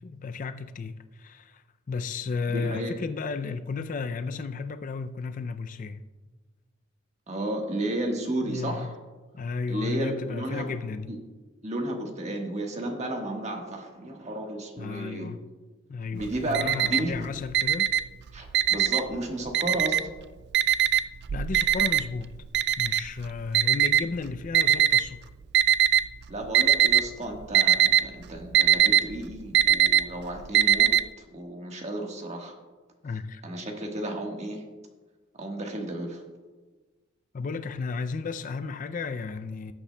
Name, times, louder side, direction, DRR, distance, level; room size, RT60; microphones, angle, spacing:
voice 1, 0.0-6.0 8.4-9.0 9.3-11.1 14.8-15.4 15.9-17.9 21.3-22.3 22.8-25.2 33.0-33.4 37.3-39.7, left 4 dB, 40° left, 0.4 m, -33 dB
voice 2, 2.5-3.0 7.3-8.9 9.7-10.7 11.1-11.2 11.6-15.3 16.1-17.3 18.3-20.0 26.3-30.9 31.3-32.5 33.4-34.6 35.3-36.2, right 1 dB, 35° right, 1.4 m, -33 dB
Alarm, 16.2-17.2 17.5-19.2 19.5-20.2 20.5-25.0 25.5-26.2 26.4-27.1 27.3-31.0, right 11 dB, 55° right, 0.3 m, -21 dB
18.0 x 8.4 x 2.2 m
head